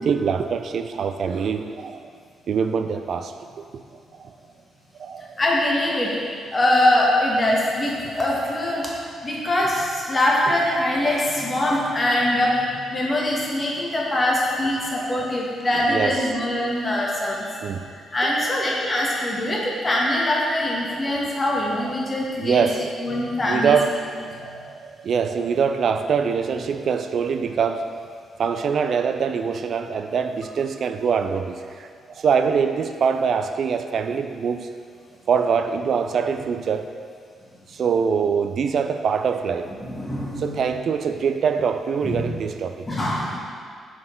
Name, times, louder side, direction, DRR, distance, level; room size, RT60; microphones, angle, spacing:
voice 1, 0.0-2.1 2.5-3.3 4.2-4.3 5.0-5.4 8.4-8.5 11.9-12.1 14.2-14.3 15.0-15.3 15.9-16.2 17.4-17.9 18.2-18.5 20.9-21.4 21.8-22.1 22.4-22.9 23.4-23.9 24.2-31.9 32.2-34.7 35.3-36.9 37.7-39.7 40.4-42.9, right 6 dB, 60° right, 8 dB, 0.3 m, -24 dB
voice 2, 5.4-6.2 6.5-8.9 9.2-17.5 17.9-22.7 23.0-23.7 24.3-24.5 39.8-40.6 42.0-42.2 42.9-43.4, left 1 dB, 35° left, -3 dB, 1.6 m, -23 dB
5.9 x 4.7 x 3.9 m, 2.2 s
hypercardioid pair, 40°, 0 cm